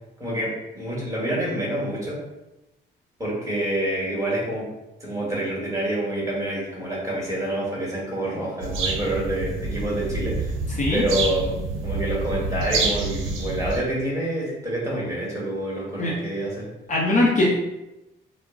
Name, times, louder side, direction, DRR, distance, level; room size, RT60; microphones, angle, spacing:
voice 1, 0.2-2.2 3.2-4.6 5.0-10.5 10.9-11.5 11.8-16.7, right 1 dB, 15° right, -6 dB, 1.3 m, -27 dB
sound 1, 8.6-13.8, right 3 dB, 75° right, 0.6 m, -27 dB
voice 2, 16.9-17.5, left 2 dB, 40° left, -3 dB, 0.6 m, -20 dB
2.3 x 2.1 x 3.6 m, 0.95 s
cardioid pair, 90°, 20 cm